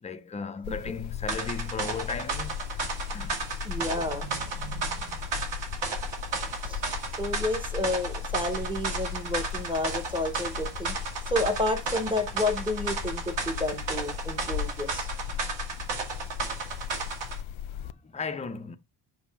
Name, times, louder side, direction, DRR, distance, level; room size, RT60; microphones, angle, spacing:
voice 1, 0.0-2.9 3.1-3.5 17.8-18.8, left 5 dB, 15° left, 0.4 m, -36 dB
sound 1, 0.6-17.9, left 10 dB, 75° left, 0.6 m, -37 dB
sound 2, 1.3-17.4, right 5 dB, 65° right, 2.5 m, -34 dB
voice 2, 3.6-5.5 6.6-6.8 7.2-10.9 11.3-15.1, left 2 dB, 10° right, 0.8 m, -31 dB
7.1 x 2.7 x 5.5 m
cardioid pair, 180°, 48 cm